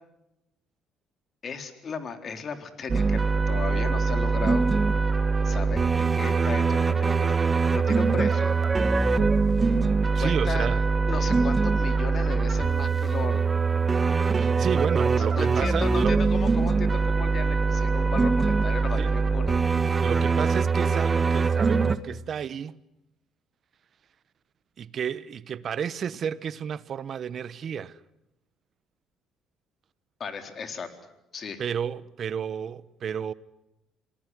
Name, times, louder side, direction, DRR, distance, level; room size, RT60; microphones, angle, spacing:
voice 1, 1.4-4.6 5.4-7.3 7.7-8.5 10.2-10.7 11.1-13.4 15.2-19.5 30.2-30.9 31.3-31.6, left 5 dB, 45° left, 4.0 m, -35 dB
sound 1, 2.9-22.0, right 4 dB, 30° right, 1.4 m, -23 dB
voice 2, 10.1-10.8 14.3-16.2 19.0-19.1 20.0-22.8 24.8-28.0 31.6-33.3, right 8 dB, 50° right, 1.1 m, -32 dB
28.0 x 19.0 x 9.7 m
supercardioid pair, 75°, 0 cm